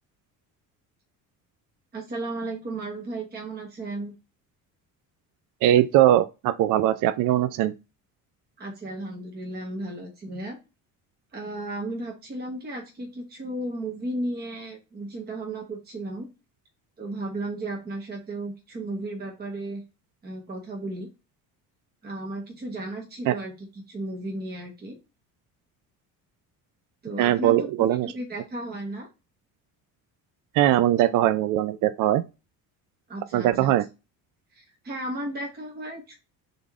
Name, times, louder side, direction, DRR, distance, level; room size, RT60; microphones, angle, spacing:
voice 1, 1.9-4.1 8.6-10.6 11.3-16.3 17.0-19.8 20.2-21.1 22.0-25.0 27.0-27.7 28.0-29.1 33.1-33.7 34.5-36.2, right 1 dB, 25° right, 1.1 m, -34 dB
voice 2, 5.6-7.7 23.3-23.4 27.2-28.1 30.5-32.2 33.3-33.8, right 13 dB, 60° right, 0.4 m, -21 dB
3.8 x 3.5 x 3.5 m
cardioid pair, 125°, 36 cm